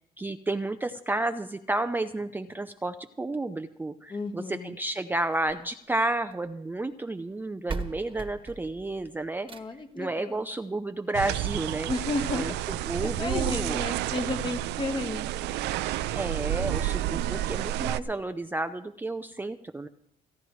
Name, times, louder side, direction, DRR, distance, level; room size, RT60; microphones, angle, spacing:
voice 1, 0.2-9.5 10.0-11.9 12.3-12.5 12.9-13.8 16.1-19.9, right 2 dB, 10° right, 8 dB, 0.5 m, -31 dB
voice 2, 4.1-4.7 9.5-10.4 11.9-12.5 13.0-15.3, left 3 dB, 30° left, 7 dB, 1.5 m, -33 dB
sound 1, 5.3-6.5 7.3-7.4 7.7-10.0 11.3-11.4 11.9-12.0 12.2-12.3 12.9-13.0, right 4 dB, 30° right, 1.4 m, -40 dB
sound 2, 11.1-18.0, right 13 dB, 85° right, 0.6 m, -30 dB
29.5 x 10.5 x 3.1 m, 0.74 s
cardioid pair, 110°, 17 cm